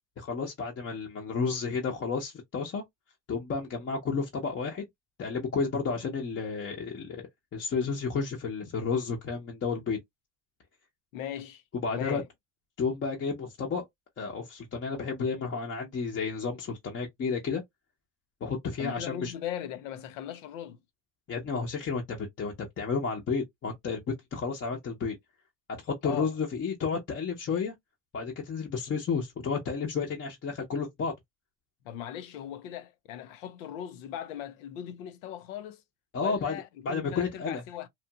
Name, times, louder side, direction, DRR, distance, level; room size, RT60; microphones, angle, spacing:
voice 1, 0.2-2.8 3.3-4.9 5.2-7.2 7.5-10.0 11.8-12.2 12.8-13.9 14.2-17.6 18.4-19.3 21.3-25.2 25.8-27.7 28.1-31.1 36.1-36.6 36.8-37.6, left 5 dB, 30° left, 0.8 m, -31 dB
voice 2, 11.1-11.6 11.9-12.2 18.8-20.8 26.0-26.3 27.5-27.6 31.8-35.8 36.2-37.9, left 11 dB, 85° left, 0.6 m, -39 dB
2.9 x 2.4 x 2.3 m
supercardioid pair, 110°, 38 cm